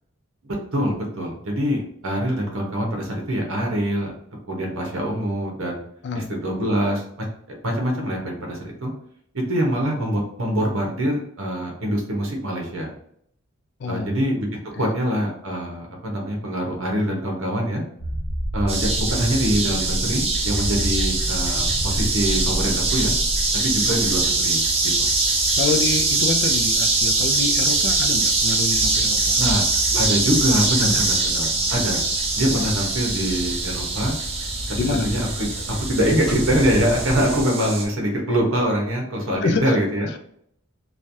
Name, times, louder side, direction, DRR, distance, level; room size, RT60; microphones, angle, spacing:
voice 1, 0.4-4.1 4.5-5.8 6.1-7.2 7.6-8.9 9.3-12.9 13.9-14.5 14.8-17.8 18.5-23.1 23.6-25.1 29.4-29.6 29.9-32.0 32.3-34.1 35.0-40.2, equal, 75° right, 0 dB, 1.0 m, -24 dB
voice 2, 13.8-14.1 14.7-14.9 25.6-29.6 29.9-30.0 30.8-31.0 32.5-32.7 34.8-35.1 35.7-35.8 39.4-40.2, left 4 dB, 50° left, 6 dB, 0.3 m, -27 dB
sound 1, 18.0-24.3, equal, 75° left, 0.9 m, -28 dB
sound 2, 18.7-37.8, right 3 dB, 30° right, 0.4 m, -23 dB
sound 3, 20.4-37.4, equal, ahead, 0.9 m, -35 dB
3.2 x 2.3 x 2.6 m, 0.67 s
head